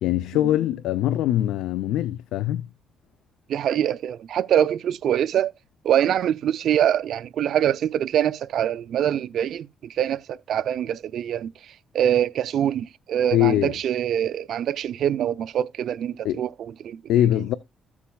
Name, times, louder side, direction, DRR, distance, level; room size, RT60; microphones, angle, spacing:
voice 1, 0.0-2.7 13.3-13.7 16.2-16.4 17.1-17.5, left 13 dB, 85° left, 0.5 m, -22 dB
voice 2, 3.5-5.5 5.8-17.0, right 10 dB, 70° right, 0.5 m, -24 dB
14.0 x 7.2 x 2.3 m
cardioid pair, 90°, 0 cm